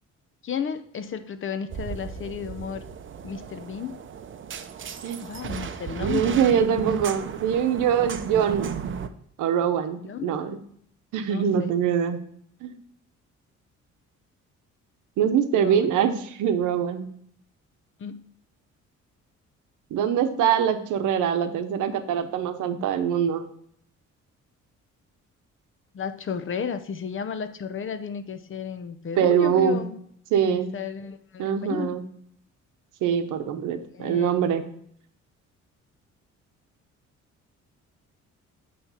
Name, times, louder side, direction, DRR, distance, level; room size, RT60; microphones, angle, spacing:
voice 1, 0.4-2.9 3.2-4.0 5.2-6.5 10.0-10.5 11.3-11.7 15.6-16.0 18.0-18.3 25.9-30.0 30.3-31.9 33.8-34.4, left 7 dB, 40° left, 10 dB, 0.7 m, -33 dB
sound 1, 1.7-9.1, right 7 dB, 40° right, 0.6 m, -35 dB
voice 2, 6.0-8.7 9.4-10.6 11.1-12.2 12.6-12.7 15.2-17.1 19.9-23.5 29.2-29.8 30.3-30.7 31.4-32.0 33.0-34.7, right 8 dB, 90° right, 8 dB, 0.8 m, -23 dB
8.8 x 3.2 x 5.6 m, 0.67 s
cardioid pair, 90°, 30 cm